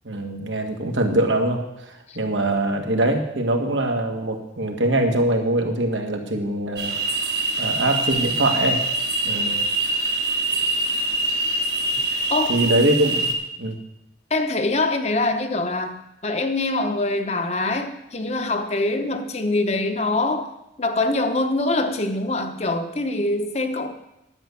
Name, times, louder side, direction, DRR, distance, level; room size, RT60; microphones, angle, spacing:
voice 1, 0.1-7.0 7.6-8.8 9.2-9.6 12.5-13.3 13.6-13.8, right 1 dB, 85° right, 3 dB, 1.7 m, -23 dB
sound 1, 6.8-13.3, right 2 dB, 60° right, 1.6 m, -24 dB
voice 2, 14.3-20.5 20.8-23.9, left 2 dB, 35° left, 7 dB, 0.9 m, -24 dB
11.0 x 7.9 x 7.0 m, 0.88 s
head